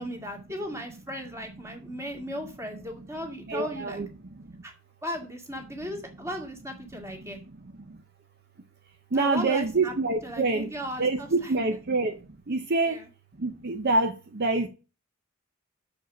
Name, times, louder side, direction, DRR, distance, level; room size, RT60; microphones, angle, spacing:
voice 1, 0.0-4.0 4.6-4.7 5.0-7.4 9.1-9.9 10.2-11.6 12.8-13.1, equal, 15° right, 2.0 m, -36 dB
voice 2, 3.5-4.1 9.1-10.7 11.0-12.1 12.5-13.0 13.4-14.7, right 3 dB, 50° right, 0.7 m, -26 dB
6.7 x 5.2 x 5.9 m
head